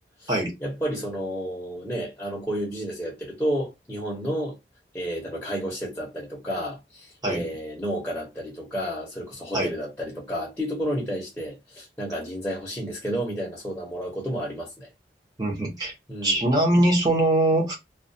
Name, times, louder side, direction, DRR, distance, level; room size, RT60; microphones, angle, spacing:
voice 1, 0.6-4.5 4.9-14.9 16.1-16.4, equal, 10° left, 0.7 m, -31 dB
voice 2, 15.4-15.9 16.2-17.7, right 1 dB, 20° right, 0.8 m, -22 dB
2.3 x 2.3 x 2.6 m
head